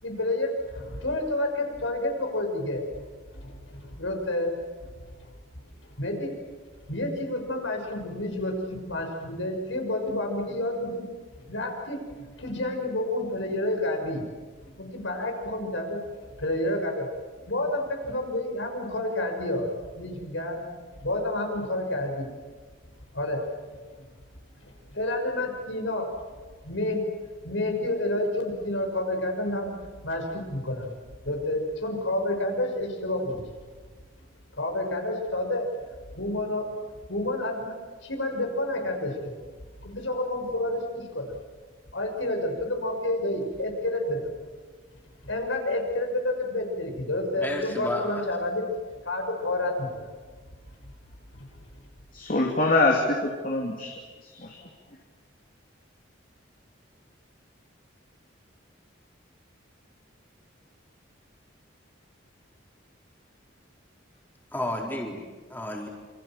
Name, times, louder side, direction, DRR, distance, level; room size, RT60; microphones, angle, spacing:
voice 1, 0.0-3.0 3.3-4.6 5.5-5.6 6.0-6.4 6.9-11.0 11.4-12.0 12.4-14.3 14.6-16.0 16.4-17.1 17.5-20.7 21.0-22.3 23.1-24.1 24.6-26.1 26.6-27.0 27.4-29.7 30.0-30.9 31.2-33.5 34.5-35.7 36.1-36.7 37.1-37.7 38.0-39.3 39.8-41.3 41.9-44.3 45.2-48.6 49.0-50.1 51.3-51.5, left 1 dB, 75° left, 2 dB, 6.1 m, -29 dB
voice 2, 47.3-48.2 64.5-65.2 65.5-65.9, left 1 dB, 10° left, -1 dB, 4.0 m, -31 dB
voice 3, 52.1-53.9 54.2-54.6, left 2 dB, 45° left, -1 dB, 2.9 m, -24 dB
27.5 x 26.0 x 7.5 m, 1.4 s
head